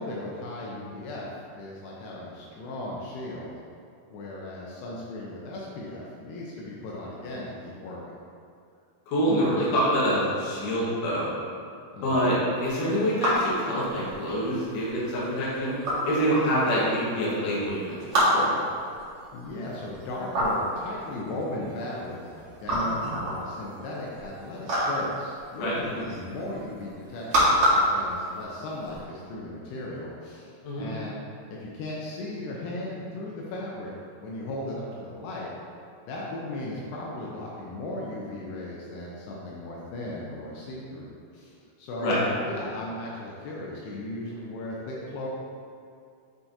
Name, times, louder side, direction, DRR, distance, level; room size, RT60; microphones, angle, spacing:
voice 1, 0.0-3.5 4.1-8.0 11.9-12.5 19.3-30.5 30.8-31.2 31.5-33.9 34.2-35.5 36.1-45.3, left 1 dB, 80° left, -4 dB, 2.8 m, -36 dB
voice 2, 9.1-11.3 12.0-15.7 16.0-18.5 25.6-25.7 30.6-30.9 42.0-42.2, equal, 60° left, -7 dB, 2.5 m, -26 dB
sound 1, 12.6-29.0, equal, 55° right, 1.7 m, -28 dB
9.2 x 4.6 x 2.7 m, 2.4 s
omnidirectional pair, 4.9 m